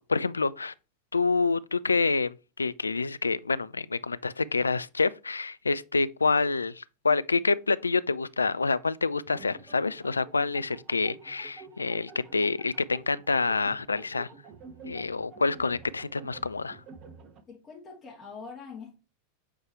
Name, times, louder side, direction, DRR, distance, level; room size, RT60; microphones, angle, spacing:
voice 1, 0.1-0.7 1.1-14.3 14.8-16.8, left 4 dB, 85° left, 0.3 m, -27 dB
sound 1, 9.3-17.4, right 4 dB, 35° right, 1.1 m, -49 dB
voice 2, 17.5-19.0, left 5 dB, 25° left, 2.6 m, -44 dB
8.0 x 4.6 x 3.0 m
figure-of-eight pair, 90°, 0 cm